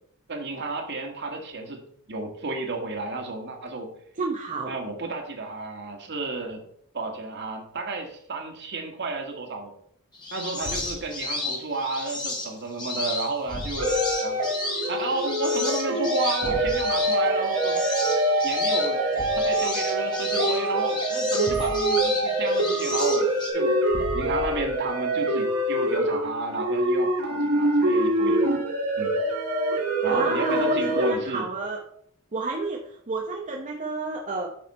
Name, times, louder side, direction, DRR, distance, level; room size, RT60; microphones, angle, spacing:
voice 1, 0.3-1.8 2.1-3.9 4.7-6.6 6.9-9.7 10.3-13.9 14.2-14.4 14.9-17.8 18.4-19.0 19.4-23.3 23.5-23.8 24.1-28.4 29.0-29.1 30.0-31.5, right 3 dB, 55° right, 3 dB, 1.8 m, -32 dB
voice 2, 4.2-4.7 30.0-31.8 32.3-34.5, right 3 dB, 35° right, 0 dB, 0.9 m, -30 dB
sound 1, 10.1-23.5, left 3 dB, 20° left, 2.2 m, -33 dB
Thump thud, 10.6-11.1 13.5-14.2 16.4-16.9 19.2-19.6 21.5-22.1 23.9-24.9, equal, 40° left, 1.2 m, -36 dB
sound 2, 13.8-31.1, right 1 dB, 80° right, 2.0 m, -25 dB
8.4 x 6.3 x 4.3 m, 0.69 s
head